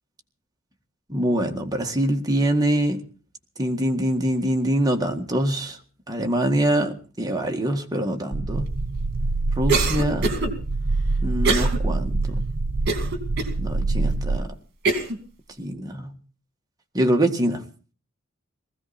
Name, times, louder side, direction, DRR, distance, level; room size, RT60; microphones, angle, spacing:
voice 1, 1.1-3.0 3.6-5.8 6.1-8.7 9.6-10.3 11.2-12.2 13.6-14.5 15.6-16.1 16.9-17.6, right 1 dB, 20° right, 1.8 m, -24 dB
sound 1, 8.3-14.4, right 2 dB, 75° right, 0.9 m, -25 dB
Cough, 9.7-10.5 11.4-11.8 12.2-12.3 12.9-13.5 14.1-14.2 14.9-15.2, right 3 dB, 55° right, 2.7 m, -23 dB
20.0 x 15.5 x 4.3 m
head